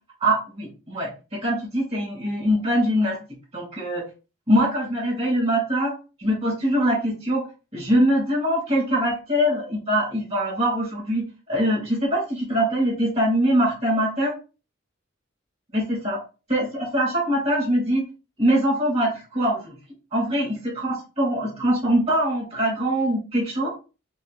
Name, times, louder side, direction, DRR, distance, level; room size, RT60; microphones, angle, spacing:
voice 1, 0.2-3.2 3.5-4.0 4.5-5.9 6.2-7.4 7.7-14.3 15.7-16.2 16.5-18.0 18.4-19.7 20.1-23.7, equal, 30° right, -1 dB, 2.7 m, -23 dB
6.2 x 3.0 x 2.6 m, 0.31 s
head